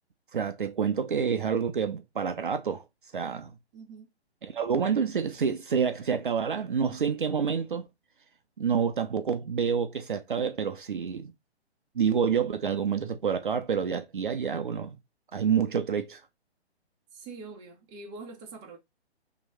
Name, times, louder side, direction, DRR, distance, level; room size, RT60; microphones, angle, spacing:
voice 1, 0.3-2.8 3.1-3.5 4.4-7.9 8.6-11.3 12.0-15.0 15.3-16.2, right 7 dB, 50° right, 0.6 m, -28 dB
voice 2, 3.7-4.1 17.1-18.8, right 4 dB, 10° right, 0.7 m, -44 dB
3.1 x 3.0 x 4.0 m
figure-of-eight pair, 130°, 33 cm